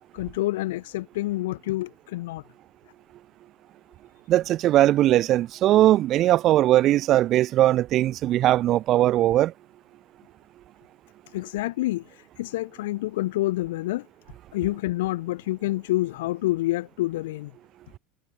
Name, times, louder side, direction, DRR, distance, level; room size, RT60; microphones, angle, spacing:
voice 1, 0.1-2.4 11.3-14.1 14.5-17.5, left 17 dB, 90° left, 2.0 m, -28 dB
voice 2, 4.3-9.5, right 14 dB, 35° right, 0.6 m, -20 dB
supercardioid pair, 170°, 0 cm